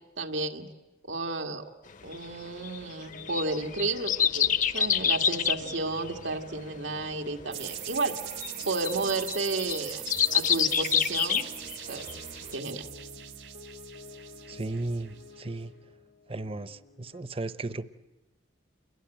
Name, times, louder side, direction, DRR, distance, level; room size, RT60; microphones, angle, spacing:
voice 1, 0.2-0.7 1.1-1.7 2.0-8.2 8.7-10.0 10.3-11.4 11.9-12.1 12.5-12.9, right 3 dB, 90° right, 4 dB, 2.0 m, -32 dB
sound 1, 2.1-12.1 12.5-12.6, left 8 dB, 45° left, 0.9 m, -28 dB
sound 2, 3.1-17.2, left 1 dB, 85° left, 3.1 m, -50 dB
sound 3, 7.5-15.3, right 13 dB, 65° right, 1.8 m, -41 dB
voice 2, 14.5-15.7 16.3-17.8, right 2 dB, 30° right, 14 dB, 0.9 m, -35 dB
29.0 x 22.0 x 9.1 m, 1.0 s
head